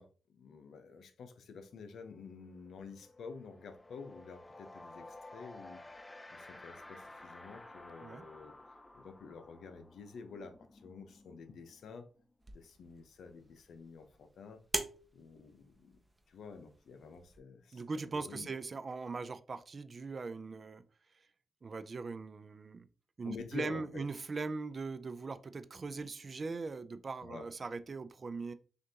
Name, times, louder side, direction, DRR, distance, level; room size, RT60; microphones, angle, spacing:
voice 1, 0.0-5.8 6.3-8.6 8.9-12.1 12.5-14.6 15.1-16.0 16.3-17.8 18.1-18.5 23.2-24.0 27.2-27.5, left 5 dB, 80° left, 8 dB, 0.7 m, -49 dB
sound 1, 1.6-1.8 2.1-12.7, left 2 dB, 15° left, 0.4 m, -54 dB
sound 2, 12.4-17.4, right 2 dB, 20° right, 0.8 m, -44 dB
voice 2, 17.7-20.8 21.6-22.9 23.2-28.5, right 4 dB, 45° right, 12 dB, 0.5 m, -40 dB
6.2 x 2.6 x 2.8 m, 0.38 s
cardioid pair, 70°, 0 cm